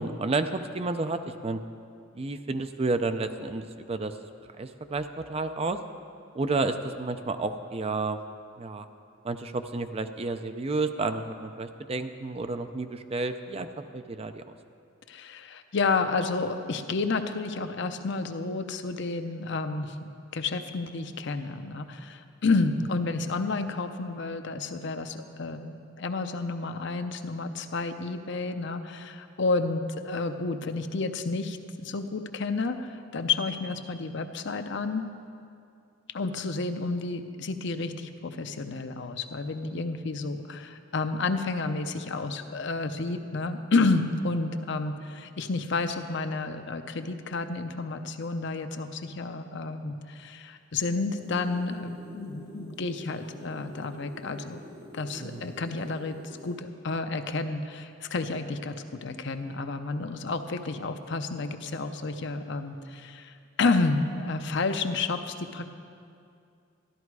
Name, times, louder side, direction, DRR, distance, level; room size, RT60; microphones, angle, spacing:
voice 1, 0.0-1.6 2.2-4.2 4.6-5.8 6.3-8.2 8.6-8.9 9.2-13.7 13.9-14.4 55.2-55.5, right 3 dB, 30° right, 9 dB, 0.5 m, -31 dB
voice 2, 15.1-35.1 36.1-54.6 54.9-56.1 56.4-63.3 63.6-65.7, left 3 dB, 65° left, 8 dB, 0.7 m, -30 dB
sound 1, 50.9-56.6, equal, 15° right, 3.1 m, -47 dB
13.0 x 12.0 x 4.7 m, 2.5 s
head